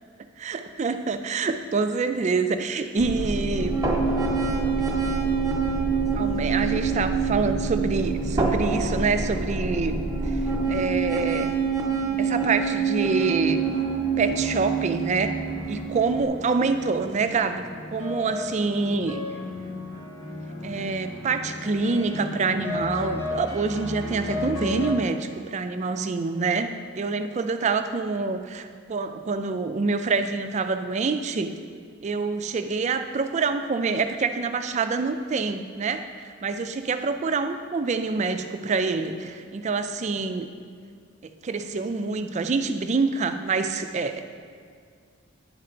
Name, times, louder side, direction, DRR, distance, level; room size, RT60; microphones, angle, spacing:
voice 1, 0.4-3.8 6.1-10.4 10.7-11.6 12.2-13.7 14.2-15.4 15.7-19.3 20.6-31.6 32.0-40.5 41.4-44.2, right 4 dB, 35° right, 9 dB, 0.3 m, -26 dB
sound 1, 3.0-16.3, right 4 dB, 15° right, 0.9 m, -26 dB
sound 2, 13.1-25.0, left 2 dB, 65° left, 1.1 m, -35 dB
9.9 x 4.4 x 3.8 m, 2.1 s
head